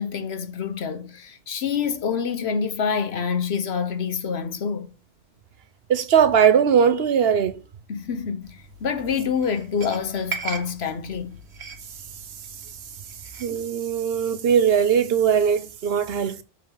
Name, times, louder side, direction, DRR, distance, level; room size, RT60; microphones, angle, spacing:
voice 1, 0.0-4.9 7.9-11.4, left 6 dB, 80° left, 1.2 m, -27 dB
voice 2, 5.9-7.6 13.4-16.4, right 7 dB, 70° right, 1.0 m, -20 dB
sound 1, 8.4-13.6, right 5 dB, 90° right, 1.6 m, -39 dB
7.9 x 6.6 x 3.9 m
omnidirectional pair, 1.1 m